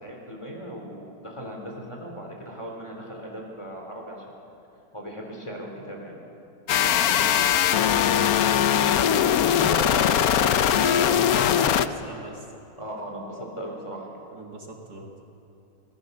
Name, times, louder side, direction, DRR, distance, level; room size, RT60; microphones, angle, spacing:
voice 1, 0.0-4.2 4.9-6.2 9.2-9.3 9.6-11.4 12.8-14.2, right 1 dB, 15° left, 0 dB, 3.8 m, -37 dB
sound 1, 6.7-11.9, left 10 dB, 65° left, 1.0 m, -21 dB
voice 2, 7.1-7.5 9.5-12.5 14.3-15.1, right 1 dB, 60° right, 1 dB, 2.5 m, -37 dB
26.5 x 18.0 x 7.0 m, 2.7 s
omnidirectional pair, 1.9 m